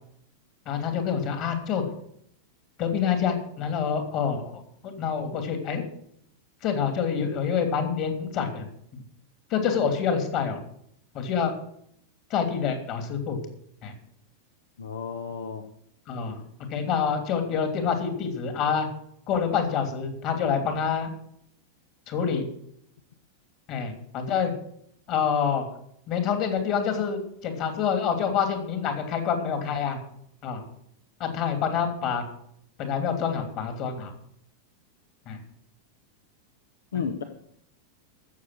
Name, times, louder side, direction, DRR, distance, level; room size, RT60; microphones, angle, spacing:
voice 1, 0.7-1.8 2.8-4.5 4.8-5.8 6.6-8.6 9.5-10.6 11.1-11.5 12.3-13.4 13.8-13.9 16.1-16.4 16.7-18.9 19.3-21.1 22.1-22.5 23.7-24.5 25.1-25.6 26.1-30.0 30.4-30.6 31.2-32.2 32.8-34.1 35.3-35.4, left 7 dB, 40° left, 6 dB, 3.1 m, -27 dB
voice 2, 14.8-15.6 36.9-37.2, left 6 dB, 65° left, 7 dB, 1.1 m, -32 dB
14.5 x 7.1 x 7.8 m, 0.70 s
figure-of-eight pair, 90°, 0 cm